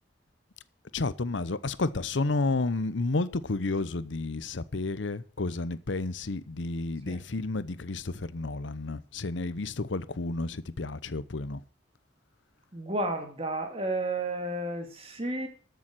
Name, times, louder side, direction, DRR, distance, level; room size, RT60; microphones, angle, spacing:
voice 1, 0.9-11.6, left 3 dB, 85° left, 0.8 m, -31 dB
voice 2, 12.7-15.5, right 2 dB, 30° right, 2.4 m, -32 dB
13.5 x 7.1 x 6.2 m
head